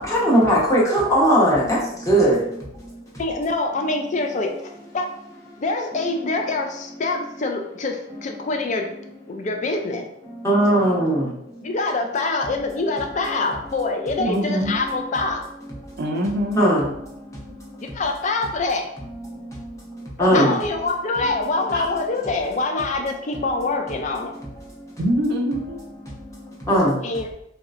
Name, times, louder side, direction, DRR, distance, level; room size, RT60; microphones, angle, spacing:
voice 1, 0.1-1.8 2.1-2.4 10.4-11.2 16.6-16.8 20.2-20.5 26.7-26.9, right 1 dB, 15° left, -6 dB, 0.9 m, -17 dB
voice 2, 3.2-5.1 5.6-8.9 9.3-10.1 11.6-15.4 17.8-18.9 20.2-24.4 27.0-27.3, left 3 dB, 40° left, 4 dB, 0.4 m, -25 dB
voice 3, 14.2-14.7 16.0-16.6 20.3-20.6 25.0-25.8, equal, 60° right, 2 dB, 0.4 m, -24 dB
3.1 x 2.8 x 2.5 m, 0.79 s
head